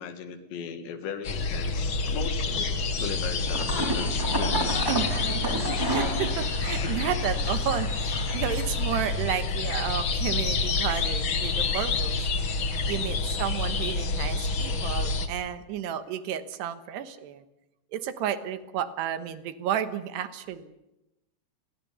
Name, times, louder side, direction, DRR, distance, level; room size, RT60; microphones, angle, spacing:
voice 1, 0.0-4.8 6.8-7.1 13.0-13.1, left 6 dB, 85° left, 8 dB, 4.5 m, -37 dB
sound 1, 1.2-15.3, left 3 dB, 55° left, 1.4 m, -28 dB
sound 2, 3.4-9.2, right 1 dB, 5° right, 3.2 m, -32 dB
voice 2, 5.8-12.2 12.8-17.4 17.9-20.7, right 10 dB, 75° right, 11 dB, 3.3 m, -32 dB
30.0 x 22.0 x 7.1 m, 0.93 s
omnidirectional pair, 5.0 m